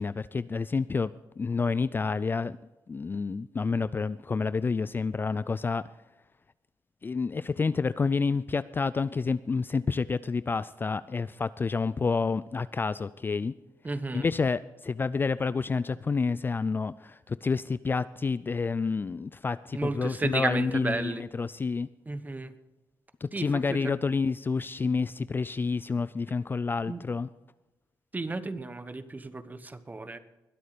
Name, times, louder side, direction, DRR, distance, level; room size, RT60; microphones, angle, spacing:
voice 1, 0.0-2.6 2.9-5.8 7.0-13.5 14.1-21.9 23.2-27.3, left 4 dB, 30° left, 17 dB, 0.4 m, -29 dB
voice 2, 13.8-14.3 19.7-21.3 22.0-22.5 23.3-24.0 26.9-27.0 28.1-30.2, right 3 dB, 20° right, 12 dB, 1.2 m, -33 dB
21.5 x 8.4 x 5.1 m, 1.0 s
cardioid pair, 85°, 8 cm